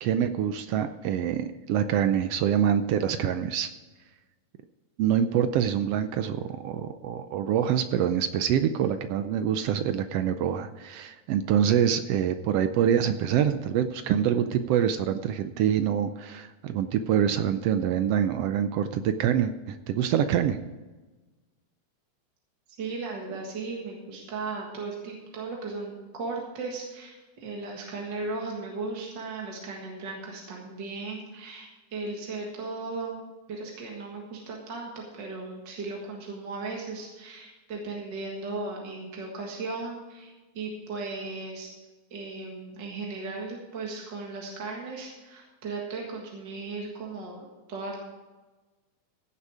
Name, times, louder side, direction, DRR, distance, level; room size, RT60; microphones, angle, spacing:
voice 1, 0.0-3.7 5.0-20.6, right 9 dB, 75° right, 10 dB, 1.4 m, -25 dB
voice 2, 22.8-33.2 33.5-41.7 42.1-48.0, right 3 dB, 45° right, -1 dB, 2.0 m, -36 dB
16.0 x 7.1 x 4.9 m, 1.2 s
omnidirectional pair, 3.3 m